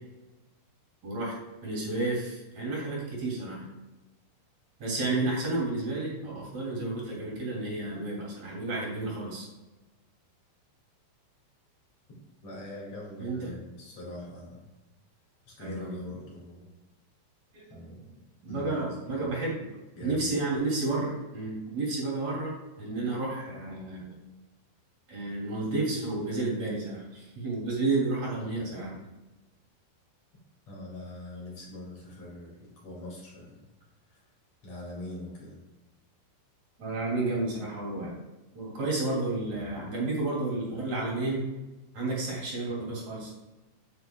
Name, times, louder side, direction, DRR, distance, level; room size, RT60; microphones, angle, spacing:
voice 1, 1.0-1.3 1.6-3.6 4.8-9.5 13.2-13.5 15.6-16.0 17.5-17.6 18.4-19.6 20.0-24.1 25.1-29.0 36.8-38.2 38.5-41.4 41.9-43.3, right 2 dB, 40° right, -4 dB, 3.3 m, -31 dB
voice 2, 12.4-14.7 15.5-16.7 17.7-18.1 18.5-19.3 20.0-20.3 30.7-33.7 34.1-34.3 34.6-35.6, left 1 dB, 45° left, -4 dB, 2.4 m, -43 dB
9.5 x 8.6 x 2.3 m, 1.1 s
omnidirectional pair, 5.8 m